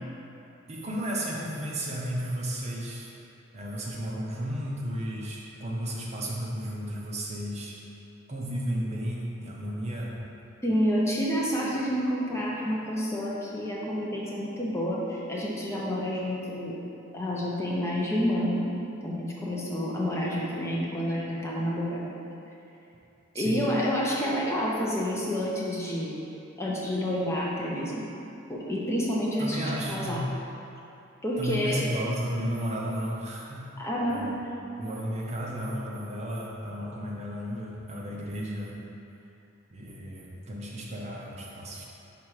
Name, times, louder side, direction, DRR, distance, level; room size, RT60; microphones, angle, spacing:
voice 1, 0.7-3.1 3.5-7.8 8.3-10.2 23.3-23.6 29.4-30.3 31.4-33.7 34.1-34.4 34.8-38.8 39.7-41.9, equal, 35° right, -3 dB, 0.7 m, -33 dB
voice 2, 10.6-16.8 17.1-18.7 19.0-22.1 23.3-26.2 26.6-28.0 28.5-30.2 31.2-31.8 33.8-34.2, equal, 15° left, -5 dB, 0.7 m, -29 dB
5.8 x 3.7 x 4.8 m, 2.8 s
head